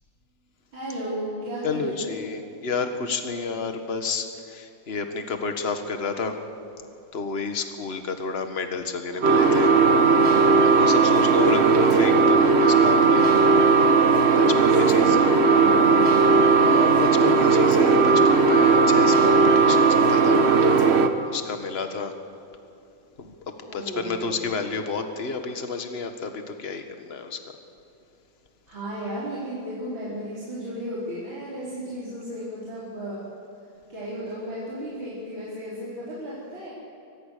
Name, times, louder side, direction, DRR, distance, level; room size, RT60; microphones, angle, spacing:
voice 1, 0.7-2.2 14.5-16.8 23.6-24.4 28.7-33.3 33.9-36.7, equal, 85° right, -9 dB, 5.6 m, -34 dB
voice 2, 1.6-6.4 7.1-9.7 10.6-13.3 14.0-15.3 16.6-20.4 20.9-22.1 23.2-23.3 23.7-27.4, left 4 dB, 35° left, 7 dB, 1.7 m, -30 dB
sound 1, 9.2-21.1, right 4 dB, 40° right, 1.2 m, -17 dB
24.0 x 20.0 x 6.8 m, 2.8 s
omnidirectional pair, 2.1 m